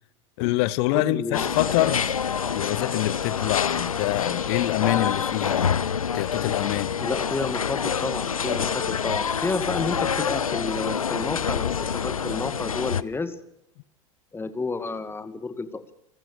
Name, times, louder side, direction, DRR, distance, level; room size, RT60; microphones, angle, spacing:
voice 1, 0.4-2.2 2.5-5.8 6.1-6.9, left 19 dB, 50° left, 0.9 m, -26 dB
voice 2, 0.9-1.6 7.0-13.4 14.3-15.9, left 3 dB, 15° left, 2.1 m, -30 dB
sound 1, 1.3-13.0, left 7 dB, 85° left, 0.8 m, -27 dB
28.0 x 14.5 x 6.7 m
figure-of-eight pair, 85°, 17 cm